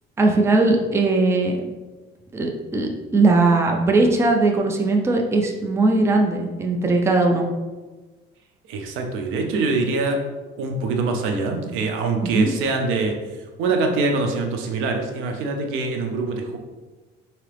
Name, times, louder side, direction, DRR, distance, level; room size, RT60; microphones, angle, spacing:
voice 1, 0.2-1.6 2.3-7.5 12.3-12.5, right 3 dB, 15° right, 2 dB, 0.4 m, -19 dB
voice 2, 8.7-10.2 10.6-13.1 13.6-16.6, right 3 dB, 85° right, 3 dB, 0.6 m, -24 dB
3.7 x 2.8 x 3.3 m, 1.3 s
cardioid pair, 125°, 20 cm